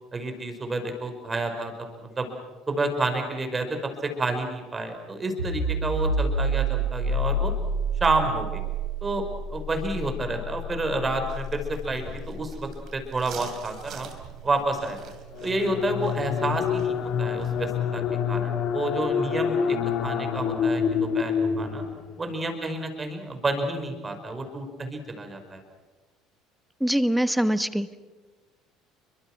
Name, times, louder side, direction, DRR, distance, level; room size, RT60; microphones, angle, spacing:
voice 1, 0.1-1.7 2.0-2.3 2.7-7.5 8.0-8.6 9.0-9.3 9.5-14.1 14.4-15.0 15.4-18.0 18.3-19.8 20.0-21.8 22.2-25.6, right 2 dB, 25° right, 6 dB, 5.2 m, -29 dB
sound 1, 5.4-16.8, right 1 dB, 85° right, 4.2 m, -31 dB
sound 2, 11.2-17.7, right 6 dB, 50° right, 3.1 m, -47 dB
sound 3, 15.3-22.2, left 7 dB, 50° left, 2.2 m, -27 dB
voice 2, 26.8-28.0, equal, ahead, 14 dB, 1.3 m, -23 dB
30.0 x 23.5 x 6.2 m, 1.3 s
figure-of-eight pair, 60°, 0 cm